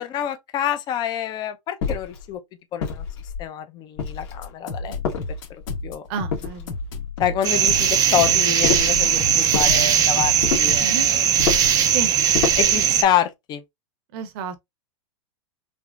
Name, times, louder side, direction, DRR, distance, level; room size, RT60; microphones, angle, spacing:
voice 1, 0.0-2.4 2.7-3.0 3.4-5.0 5.8-6.0 7.2-11.3 12.6-13.6, left 10 dB, 25° left, 0.6 m, -26 dB
sound 1, 1.8-2.2 2.8-3.5 4.0-4.5 5.0-5.7 6.3-7.0 8.6-9.0 9.5-9.8 10.4-10.8 11.4-11.8 12.3-12.8, left 6 dB, 50° left, 1.6 m, -27 dB
sound 2, 4.4-10.8, left 3 dB, 70° left, 1.8 m, -31 dB
voice 2, 6.1-6.7 10.8-11.1 11.9-12.1 14.1-14.6, right 5 dB, 50° right, 0.8 m, -31 dB
sound 3, 7.4-13.0, right 9 dB, 20° right, 0.5 m, -19 dB
3.5 x 2.8 x 2.4 m
supercardioid pair, 145°, 17 cm